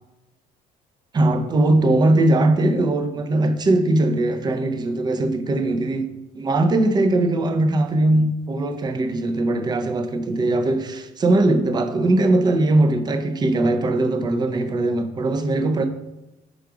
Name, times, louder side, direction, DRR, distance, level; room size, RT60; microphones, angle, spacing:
voice 1, 1.1-6.1 6.3-15.8, right 2 dB, 25° right, 0.4 m, -20 dB
4.7 x 2.4 x 4.7 m
cardioid pair, 110°, 17 cm